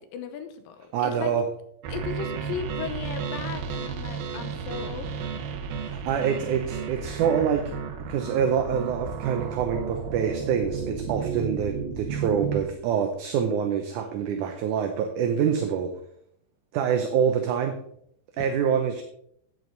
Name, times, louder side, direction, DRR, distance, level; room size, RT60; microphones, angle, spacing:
voice 1, 0.0-1.3 1.9-5.6 18.4-18.6, left 7 dB, 80° left, 8 dB, 2.6 m, -36 dB
voice 2, 0.9-1.5 5.8-7.7 8.1-16.0 16.7-17.8 18.4-19.0, right 7 dB, 70° right, 5 dB, 2.1 m, -26 dB
sound 1, 1.8-12.6, right 6 dB, 90° right, 2.8 m, -33 dB
10.5 x 9.1 x 3.9 m, 0.68 s
omnidirectional pair, 4.1 m